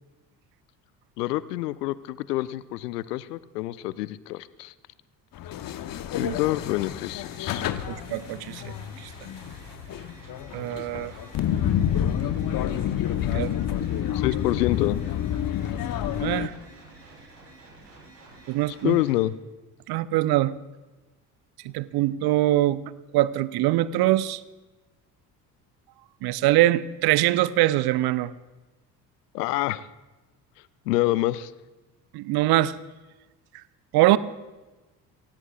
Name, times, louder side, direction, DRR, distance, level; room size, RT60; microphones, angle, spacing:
voice 1, 1.2-4.7 6.1-7.6 14.1-15.0 18.8-19.3 29.3-29.9 30.9-31.5, left 17 dB, 70° left, 18 dB, 0.7 m, -27 dB
sound 1, 5.4-16.5, left 10 dB, 45° left, 1.0 m, -29 dB
sound 2, 7.3-19.2, right 2 dB, 85° right, 3.7 m, -50 dB
voice 2, 7.9-9.1 10.5-11.1 13.3-13.5 16.2-16.5 18.5-19.0 19.9-20.5 21.7-22.8 23.1-24.4 26.2-28.3 32.1-32.7 33.9-34.2, right 15 dB, 50° right, 17 dB, 0.8 m, -23 dB
28.0 x 16.0 x 2.4 m, 1.1 s
figure-of-eight pair, 55°, 49 cm